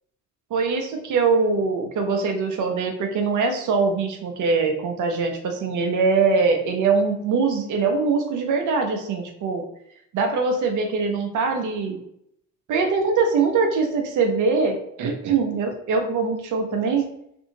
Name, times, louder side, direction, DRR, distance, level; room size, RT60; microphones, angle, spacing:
voice 1, 0.5-9.6 10.1-12.0 12.7-17.1, right 4 dB, 50° right, 4 dB, 0.7 m, -22 dB
2.6 x 2.5 x 2.7 m, 0.75 s
hypercardioid pair, 55°, 38 cm